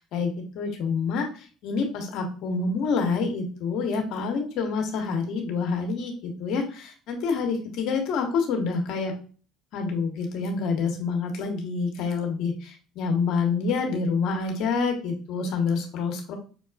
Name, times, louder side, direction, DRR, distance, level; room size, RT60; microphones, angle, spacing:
voice 1, 0.0-9.1 9.7-16.3, left 4 dB, 65° left, 3 dB, 1.0 m, -27 dB
5.4 x 2.3 x 2.3 m, 0.38 s
supercardioid pair, 75°, 0 cm